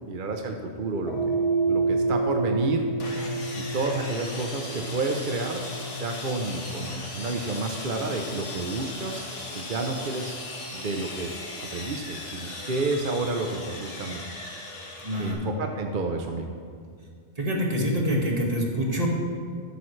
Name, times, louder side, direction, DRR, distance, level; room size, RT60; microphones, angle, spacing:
voice 1, 0.1-1.4 1.7-2.8 3.5-5.6 6.0-10.4 10.7-11.3 11.7-14.2 15.2-16.5, right 3 dB, 50° right, 4 dB, 0.9 m, -30 dB
sound 1, 1.0-9.5, right 3 dB, 60° left, 1.7 m, -30 dB
Sawing, 3.0-15.3, left 2 dB, 75° left, 1.8 m, -38 dB
voice 2, 15.0-15.4 17.4-19.1, equal, 30° right, -2 dB, 1.9 m, -26 dB
13.5 x 12.0 x 3.3 m, 2.1 s
omnidirectional pair, 1.2 m